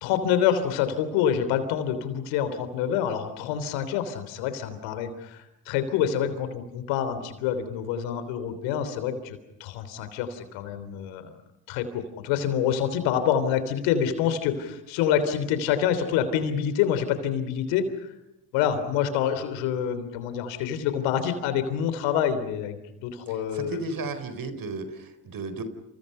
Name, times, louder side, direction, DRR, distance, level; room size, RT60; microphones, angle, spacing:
voice 1, 0.0-11.3 11.7-17.9 18.5-23.8, left 9 dB, 80° left, 11 dB, 3.6 m, -27 dB
voice 2, 23.3-25.6, right 3 dB, 50° right, 11 dB, 4.5 m, -34 dB
28.5 x 28.0 x 5.7 m, 0.90 s
hypercardioid pair, 60°, 44 cm